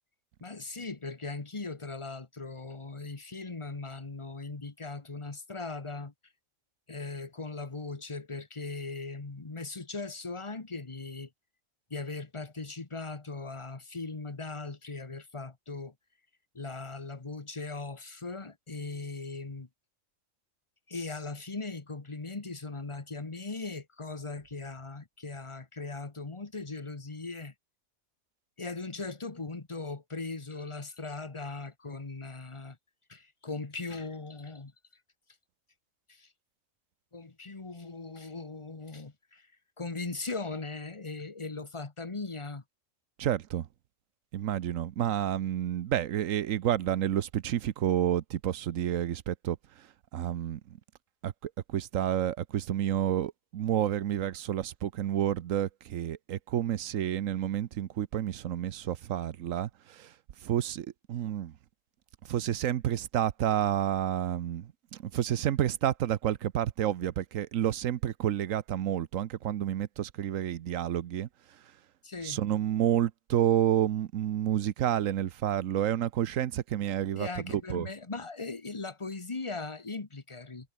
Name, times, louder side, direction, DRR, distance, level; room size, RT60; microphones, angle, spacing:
voice 1, 0.4-6.1 6.9-11.3 11.9-15.9 16.5-19.7 20.9-27.5 28.6-32.8 33.1-34.7 36.1-36.3 37.1-39.5 39.8-42.6 72.0-72.4 77.2-80.7, left 3 dB, 25° left, 1.4 m, -39 dB
voice 2, 43.2-43.7 44.3-49.9 50.1-50.8 51.2-60.1 60.4-61.5 62.3-71.3 72.2-77.9, right 11 dB, 80° right, 1.2 m, -30 dB
omnidirectional pair, 1.4 m